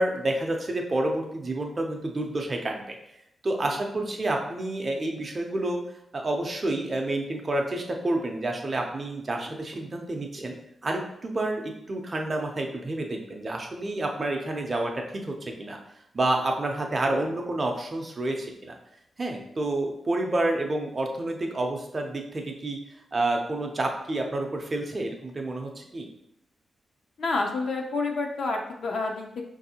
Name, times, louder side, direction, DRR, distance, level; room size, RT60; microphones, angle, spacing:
voice 1, 0.0-3.0 3.4-5.8 6.1-10.6 10.8-15.8 16.1-18.8 19.2-22.8 23.1-26.1, right 2 dB, 25° right, 2 dB, 0.5 m, -29 dB
voice 2, 27.2-29.4, left 3 dB, 55° left, 1 dB, 0.5 m, -29 dB
5.5 x 2.6 x 2.8 m, 0.78 s
wide cardioid pair, 175°, 0 cm